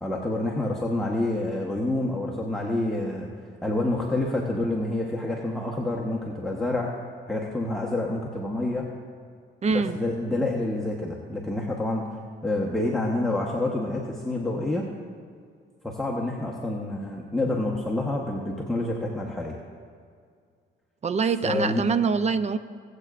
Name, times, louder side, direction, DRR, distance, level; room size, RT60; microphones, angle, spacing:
voice 1, 0.0-3.3 3.6-6.9 7.3-8.9 9.7-12.1 12.4-14.9 15.8-19.6 21.4-21.8, left 2 dB, ahead, -4 dB, 1.1 m, -28 dB
voice 2, 9.6-10.0 21.0-22.6, right 5 dB, 35° right, 12 dB, 0.5 m, -24 dB
20.5 x 8.1 x 2.5 m, 2.1 s
cardioid pair, 90°, 20 cm